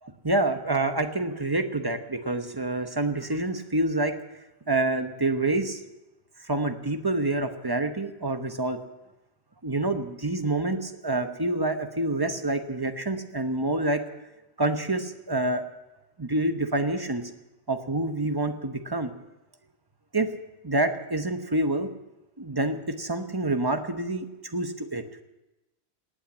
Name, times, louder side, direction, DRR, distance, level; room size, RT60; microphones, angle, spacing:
voice 1, 0.0-4.2 4.7-5.8 6.4-8.8 9.6-14.0 14.6-15.6 16.2-17.3 17.7-19.1 20.1-20.3 20.6-21.9 22.4-25.0, right 2 dB, 25° right, 7 dB, 1.0 m, -27 dB
18.0 x 9.1 x 8.6 m, 1.0 s
omnidirectional pair, 1.1 m